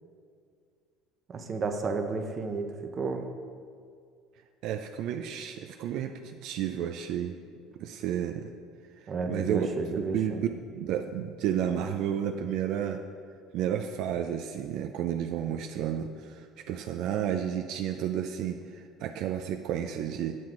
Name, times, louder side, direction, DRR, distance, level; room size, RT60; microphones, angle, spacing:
voice 1, 1.3-3.3 9.1-10.4, right 3 dB, 30° right, 5 dB, 0.7 m, -32 dB
voice 2, 4.6-7.4 7.8-8.5 9.3-9.7 10.1-10.3 10.8-13.0 13.5-20.4, right 9 dB, 65° right, 6 dB, 0.4 m, -31 dB
7.7 x 7.2 x 3.8 m, 2.2 s
cardioid pair, 135°, 0 cm